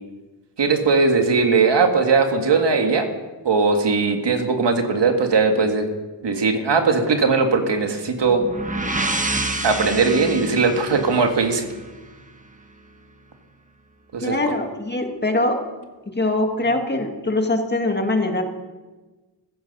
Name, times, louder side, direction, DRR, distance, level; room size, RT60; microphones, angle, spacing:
voice 1, 0.6-3.1 3.5-5.8 6.2-8.4 9.6-11.7 14.1-14.3, right 4 dB, 75° right, 4 dB, 1.9 m, -19 dB
sound 1, 8.2-12.1, right 2 dB, 20° right, 1.3 m, -28 dB
voice 2, 14.2-15.6 16.2-18.4, left 2 dB, 25° left, 4 dB, 1.9 m, -22 dB
15.0 x 14.5 x 5.5 m, 1.2 s
wide cardioid pair, 120°, 42 cm